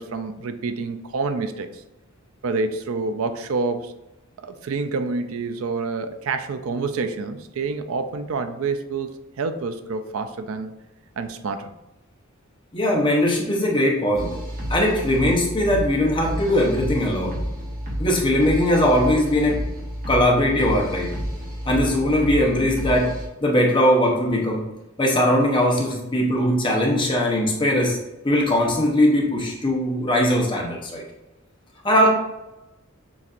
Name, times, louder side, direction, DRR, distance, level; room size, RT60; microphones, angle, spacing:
voice 1, 0.0-1.7 2.4-3.9 4.4-9.1 9.4-10.7 11.2-11.7, right 4 dB, 75° right, 8 dB, 0.4 m, -27 dB
voice 2, 12.7-14.3 14.7-17.4 18.0-19.6 20.1-21.1 21.7-23.1 23.4-24.6 25.0-28.0 28.2-31.0 31.8-32.1, left 1 dB, 25° left, -1 dB, 0.8 m, -20 dB
sound 1, 14.1-23.3, equal, 45° right, 1.3 m, -30 dB
7.0 x 2.6 x 2.5 m, 0.95 s
head